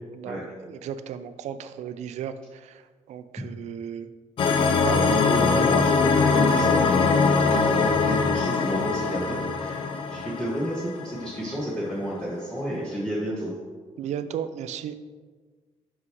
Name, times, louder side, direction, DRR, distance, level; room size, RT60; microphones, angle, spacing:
voice 1, 0.6-2.8 3.1-4.1 4.8-5.2 14.0-14.9, right 8 dB, 70° right, 11 dB, 0.4 m, -34 dB
sound 1, 4.4-11.5, left 4 dB, 45° left, 0.4 m, -22 dB
voice 2, 5.1-13.5, equal, 5° left, -7 dB, 0.9 m, -31 dB
6.1 x 5.9 x 3.0 m, 1.4 s
cardioid pair, 175°, 12 cm